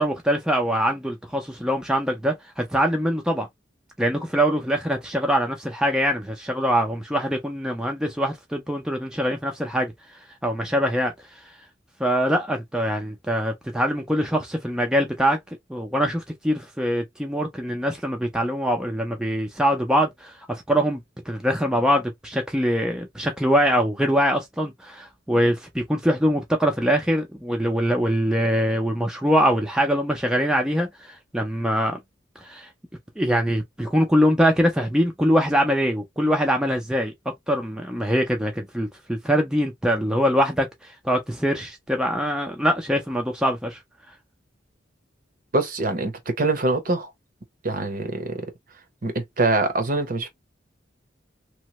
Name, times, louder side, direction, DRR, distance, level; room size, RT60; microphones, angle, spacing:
voice 1, 0.0-3.5 4.0-11.5 12.0-15.4 15.7-32.0 32.4-32.7 33.2-37.1 37.5-43.8, equal, 5° right, 0.4 m, -23 dB
voice 2, 45.5-47.1 47.6-48.5 49.0-50.3, right 2 dB, 45° right, 0.8 m, -24 dB
2.9 x 2.1 x 2.9 m
head